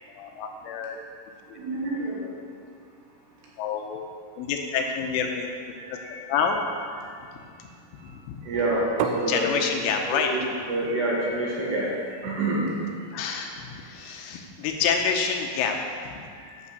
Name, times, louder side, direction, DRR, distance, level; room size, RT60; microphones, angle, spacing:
voice 1, 0.2-1.0 1.5-1.6 3.6-4.0 4.4-5.5 5.9-6.0 6.3-6.6 7.6-7.7 8.0-8.5 9.3-10.3 13.1-16.2, left 6 dB, 80° left, 3 dB, 3.2 m, -28 dB
voice 2, 1.5-2.3 5.8-6.2 7.0-7.1 8.4-9.5 10.1-12.0 12.2-12.7 14.0-14.1 16.3-16.6, right 1 dB, 65° right, -5 dB, 3.5 m, -28 dB
sound 1, 9.0-14.7, right 7 dB, 80° right, 2.8 m, -37 dB
11.0 x 6.3 x 6.9 m, 2.2 s
omnidirectional pair, 5.8 m